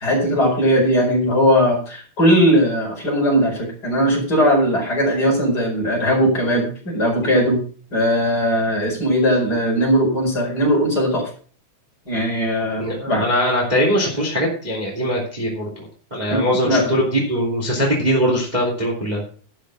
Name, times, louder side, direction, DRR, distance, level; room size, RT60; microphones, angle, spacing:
voice 1, 0.0-7.6 7.9-11.2 12.1-13.3 16.3-16.9, equal, 30° left, -2 dB, 5.4 m, -19 dB
voice 2, 12.8-19.2, equal, 15° right, -2 dB, 2.9 m, -21 dB
12.0 x 6.4 x 6.3 m, 0.42 s
omnidirectional pair, 3.4 m